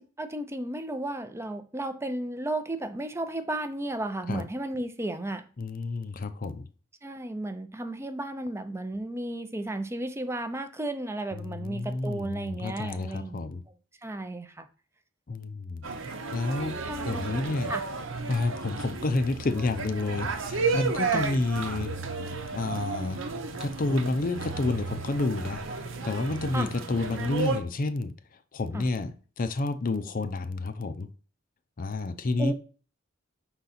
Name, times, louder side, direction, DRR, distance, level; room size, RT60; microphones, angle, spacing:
voice 1, 0.0-5.4 7.0-13.5 14.0-14.7 16.9-17.4 17.7-17.8 21.1-21.3 26.5-26.7 28.7-28.9 32.4-32.5, right 1 dB, 15° right, 0.5 m, -34 dB
voice 2, 5.6-6.7 11.4-13.6 15.3-15.8 16.3-16.7 17.1-17.7 18.3-21.9 22.5-23.2 23.6-25.6 26.0-28.1 28.5-31.1 31.8-32.5, left 2 dB, 45° left, 0.6 m, -29 dB
sound 1, 15.8-27.6, right 4 dB, 80° right, 1.0 m, -33 dB
5.9 x 4.0 x 4.2 m
head